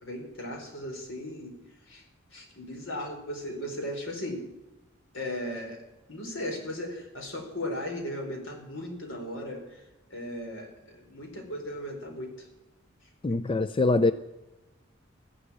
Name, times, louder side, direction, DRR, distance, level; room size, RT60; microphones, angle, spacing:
voice 1, 0.0-1.6 1.9-2.0 2.3-4.5 5.1-5.8 6.1-9.8 10.1-12.5, left 1 dB, 75° left, 4.3 m, -37 dB
voice 2, 13.2-14.1, left 3 dB, 25° left, 0.4 m, -23 dB
14.0 x 11.5 x 8.7 m
head